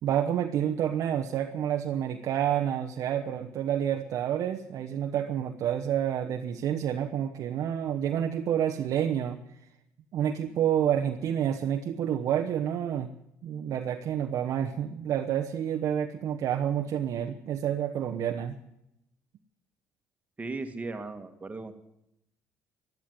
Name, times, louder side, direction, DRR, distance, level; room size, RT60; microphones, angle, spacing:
voice 1, 0.0-9.4 10.1-13.1 13.4-18.6, right 9 dB, 65° right, 3 dB, 1.0 m, -29 dB
voice 2, 20.4-21.7, right 3 dB, 25° right, 7 dB, 2.0 m, -37 dB
12.0 x 12.0 x 9.5 m, 0.83 s
cardioid pair, 90°, 6 cm